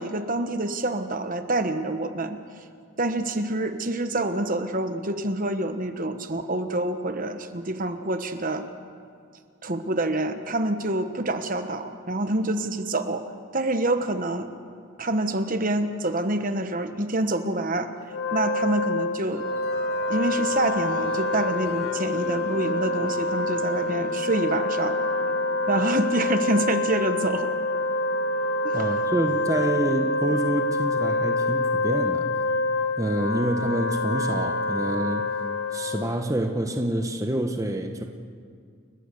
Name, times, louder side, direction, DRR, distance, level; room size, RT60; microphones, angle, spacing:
voice 1, 0.0-2.4 3.0-8.7 9.6-13.2 13.5-14.5 15.0-17.9 18.3-19.5 20.1-25.0 25.7-27.6 28.6-28.9, right 2 dB, 40° right, 9 dB, 1.1 m, -27 dB
Wind instrument woodwind instrument, 18.0-36.2, left 2 dB, 60° left, 1.4 m, -27 dB
sound 1, 19.3-31.8, right 2 dB, 85° right, 2.8 m, -44 dB
voice 2, 28.7-32.4 33.0-35.4 35.7-38.0, right 1 dB, 15° right, 4 dB, 0.9 m, -27 dB
30.0 x 14.5 x 7.0 m, 2.2 s
head